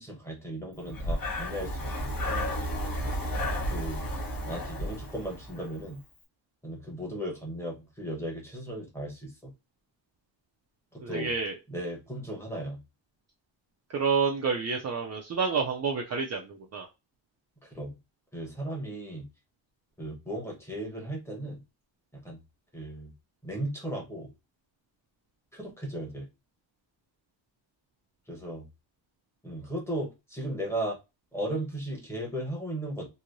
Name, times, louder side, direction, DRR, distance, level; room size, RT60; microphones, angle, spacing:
voice 1, 0.0-2.1 3.7-4.0 4.4-6.0 6.6-9.5 10.9-11.3 11.7-12.8 17.6-18.0 18.3-19.3 20.0-21.6 22.2-22.4 22.7-23.1 23.4-24.3 25.5-26.3 28.3-28.6 29.4-31.0 31.3-33.1, right 1 dB, 5° left, -1 dB, 1.0 m, -36 dB
Breathing, 0.8-5.8, equal, 45° left, 1.0 m, -32 dB
voice 2, 11.0-11.6 13.9-16.9, right 5 dB, 35° right, 1 dB, 0.4 m, -29 dB
3.0 x 2.7 x 2.5 m, 0.24 s
wide cardioid pair, 160°, 47 cm